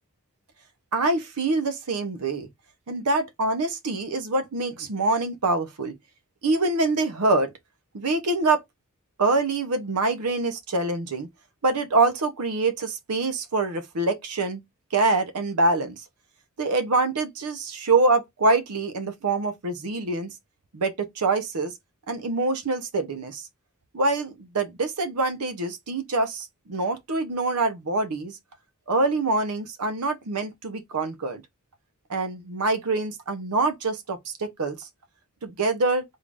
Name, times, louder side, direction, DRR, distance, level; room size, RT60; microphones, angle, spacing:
voice 1, 0.9-2.5 2.9-5.9 6.4-7.5 7.9-8.6 9.2-11.3 11.6-14.6 14.9-16.0 16.6-20.3 20.7-21.7 22.1-23.4 23.9-28.4 28.9-31.4 32.1-34.9 35.4-36.0, right 3 dB, 90° right, 0.7 m, -25 dB
3.7 x 2.5 x 3.4 m
head